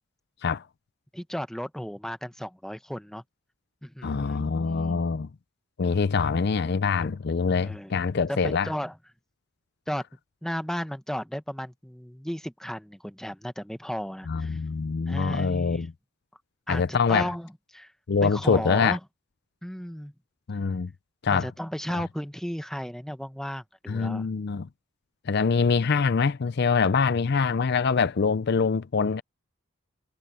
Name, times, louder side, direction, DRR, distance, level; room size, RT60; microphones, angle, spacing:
voice 1, 1.1-3.2 3.8-5.0 7.6-7.9 8.3-9.0 9.9-10.0 10.4-14.6 15.1-15.9 16.7-17.9 18.2-19.0 19.6-20.1 21.3-24.3, equal, ahead, 0.9 m, -34 dB
voice 2, 4.0-5.3 5.8-8.7 14.3-15.9 16.7-17.3 18.1-19.0 20.5-20.9 21.2-21.5 23.9-24.7 25.3-29.2, left 5 dB, 50° left, 0.5 m, -24 dB
head